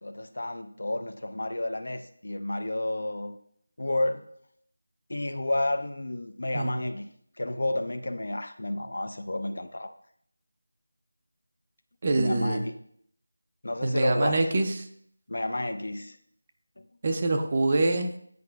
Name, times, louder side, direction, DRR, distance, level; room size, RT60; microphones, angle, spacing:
voice 1, 0.0-3.4 3.8-4.2 5.1-7.0 7.4-9.9 12.2-12.7 13.6-14.4 15.3-16.2, left 1 dB, 60° left, 10 dB, 0.5 m, -31 dB
voice 2, 12.0-12.7 13.8-14.7 17.0-18.2, right 2 dB, 25° right, 6 dB, 0.4 m, -25 dB
9.3 x 4.9 x 2.3 m, 0.67 s
figure-of-eight pair, 175°, 0 cm